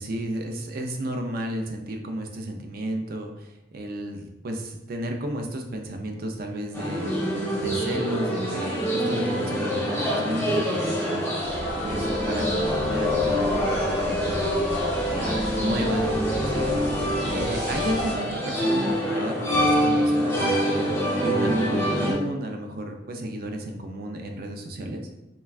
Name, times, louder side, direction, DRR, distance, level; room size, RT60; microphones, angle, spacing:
voice 1, 0.0-7.3 7.6-11.5 11.8-14.5 15.1-20.9 21.2-25.0, right 1 dB, 55° right, 4 dB, 0.4 m, -32 dB
sound 1, 6.7-22.1, equal, 10° left, 0.8 m, -25 dB
sound 2, 11.4-18.1, equal, 25° right, 1.0 m, -35 dB
3.2 x 2.2 x 2.3 m, 0.92 s
head